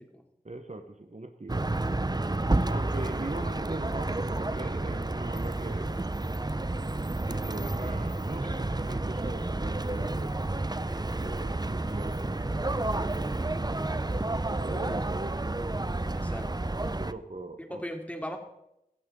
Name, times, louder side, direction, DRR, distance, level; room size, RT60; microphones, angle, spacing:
voice 1, 0.4-1.6 2.7-6.0 7.3-10.3 11.2-12.5 12.9-13.5 14.5-15.6 16.9-17.8, right 2 dB, 50° right, 8 dB, 1.2 m, -40 dB
sound 1, 1.5-17.1, right 2 dB, 25° right, 0.6 m, -30 dB
voice 2, 10.7-11.1 16.1-16.7 17.6-18.4, equal, 10° left, 3 dB, 2.8 m, -39 dB
16.5 x 14.5 x 3.8 m, 0.85 s
wide cardioid pair, 40°, 15 cm